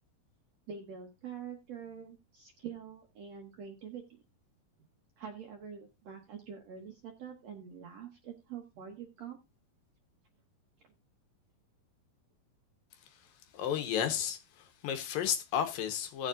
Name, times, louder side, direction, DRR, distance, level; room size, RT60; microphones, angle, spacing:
voice 1, 0.7-4.2 5.2-9.4, right 7 dB, 65° right, 1.7 m, -45 dB
voice 2, 13.5-16.3, left 9 dB, 75° left, 2.6 m, -33 dB
17.0 x 7.0 x 2.5 m
omnidirectional pair, 4.3 m